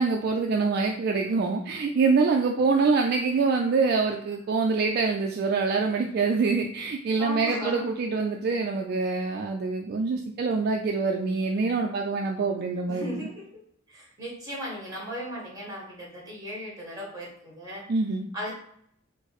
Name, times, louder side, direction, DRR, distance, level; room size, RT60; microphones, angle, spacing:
voice 1, 0.0-13.3 17.9-18.3, right 4 dB, 50° right, 2 dB, 0.3 m, -25 dB
voice 2, 7.2-7.9 12.8-13.3 13.9-17.8 18.3-18.5, equal, 20° right, -3 dB, 1.6 m, -36 dB
4.7 x 2.0 x 4.2 m, 0.68 s
head